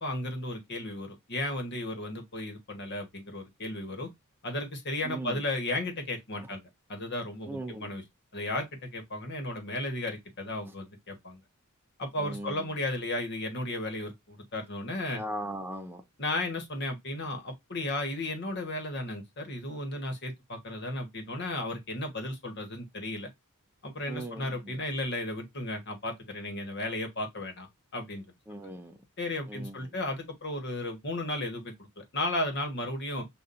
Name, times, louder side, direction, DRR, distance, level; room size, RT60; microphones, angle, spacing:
voice 1, 0.0-4.1 4.4-6.6 6.9-8.0 8.3-11.4 12.0-15.2 16.2-23.3 23.8-27.7 27.9-28.2 29.2-33.3, left 1 dB, 50° left, 1.3 m, -34 dB
voice 2, 5.0-5.4 7.5-7.9 12.2-12.6 15.1-16.0 24.1-24.6 28.5-29.0 29.5-29.7, right 1 dB, 10° right, 0.4 m, -38 dB
6.8 x 2.5 x 2.5 m
head